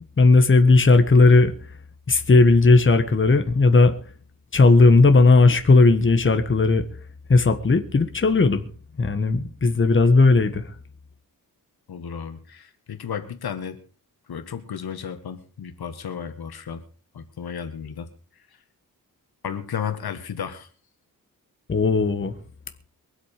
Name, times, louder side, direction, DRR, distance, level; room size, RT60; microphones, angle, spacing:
voice 1, 0.2-1.5 2.1-3.9 4.5-6.8 7.3-8.6 9.0-10.6 21.7-22.3, left 3 dB, 35° left, 1.4 m, -16 dB
voice 2, 11.9-13.8 14.3-16.8 17.1-18.1 18.3-18.4 19.4-20.7, left 7 dB, 90° left, 1.9 m, -33 dB
23.5 x 8.2 x 4.9 m
wide cardioid pair, 140°, 36 cm